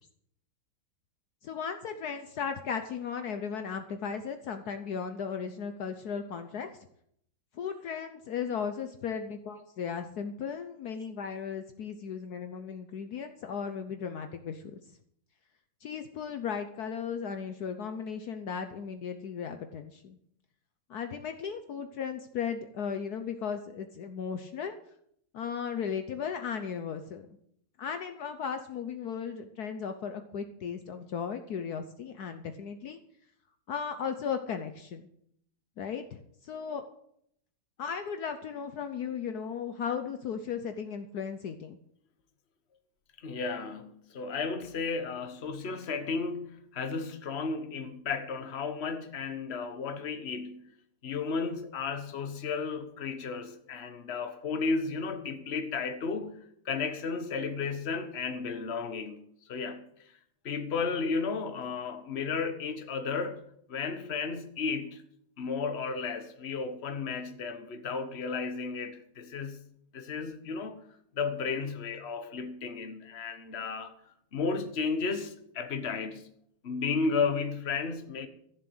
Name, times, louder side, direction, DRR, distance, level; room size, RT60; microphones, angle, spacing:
voice 1, 1.4-6.7 7.5-14.8 15.8-20.2 20.9-24.8 25.3-27.3 27.8-33.0 33.7-35.1 35.8-36.8 37.8-41.8, left 7 dB, 65° left, 1.3 m, -36 dB
voice 2, 43.2-50.7 51.0-56.4 56.6-59.2 59.5-59.9 60.4-63.4 63.7-65.0 65.4-69.6 69.9-70.8 71.1-73.9 74.3-76.2 76.6-78.3, left 4 dB, 40° left, 1.4 m, -33 dB
14.5 x 7.4 x 7.9 m
omnidirectional pair, 1.9 m